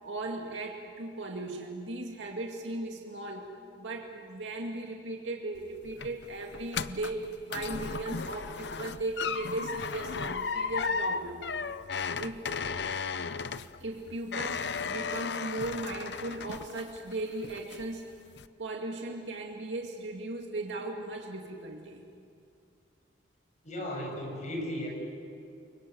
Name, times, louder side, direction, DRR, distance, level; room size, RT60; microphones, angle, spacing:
voice 1, 0.0-3.5 3.8-11.4 12.2-12.5 13.8-18.1 18.6-22.0, right 2 dB, 85° right, 1 dB, 2.3 m, -37 dB
sound 1, 5.6-17.1 17.4-18.0 18.4-18.5, left 5 dB, 70° left, 0.7 m, -35 dB
voice 2, 23.6-24.9, left 1 dB, 40° left, 0 dB, 7.1 m, -35 dB
29.5 x 24.0 x 7.9 m, 2.5 s
head